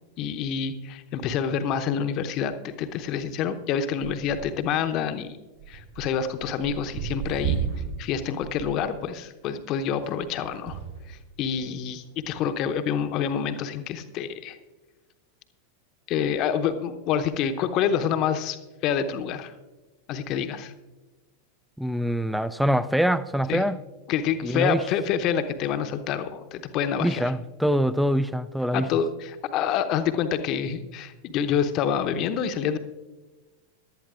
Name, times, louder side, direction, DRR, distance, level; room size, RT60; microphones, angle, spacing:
voice 1, 0.2-5.3 5.7-7.6 8.0-10.8 11.1-14.6 16.1-18.6 18.8-19.5 20.1-20.7 23.5-23.6 24.1-27.2 28.7-32.8, left 8 dB, 40° left, 0.8 m, -27 dB
sound 1, 4.0-4.8 5.6-8.1 8.4-8.9 10.0-11.2 12.0-12.1, right 7 dB, 60° right, 3.8 m, -33 dB
voice 2, 21.8-23.8 24.4-24.8 27.0-28.9, equal, ahead, 0.4 m, -24 dB
17.5 x 11.5 x 2.4 m
figure-of-eight pair, 90°, 0 cm